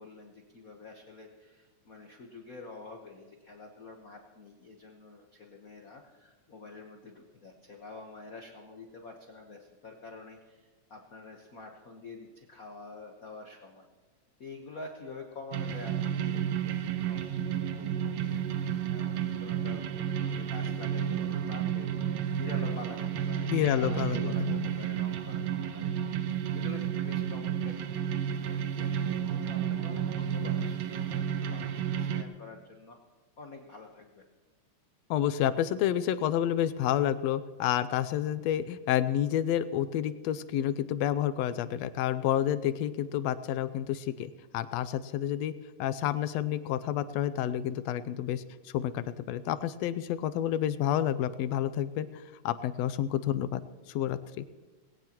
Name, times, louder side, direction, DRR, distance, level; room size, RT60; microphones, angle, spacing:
voice 1, 0.0-13.9 14.4-16.7 17.1-17.3 17.6-19.8 20.2-25.9 26.5-33.0 33.4-34.2, left 3 dB, 50° left, 2 dB, 1.0 m, -48 dB
sound 1, 15.5-32.2, right 9 dB, 70° right, 2.0 m, -31 dB
voice 2, 23.5-24.7 35.1-45.5 45.8-53.6 53.9-54.4, left 11 dB, 75° left, 13 dB, 1.7 m, -29 dB
20.0 x 17.5 x 3.0 m, 1.3 s
omnidirectional pair, 3.3 m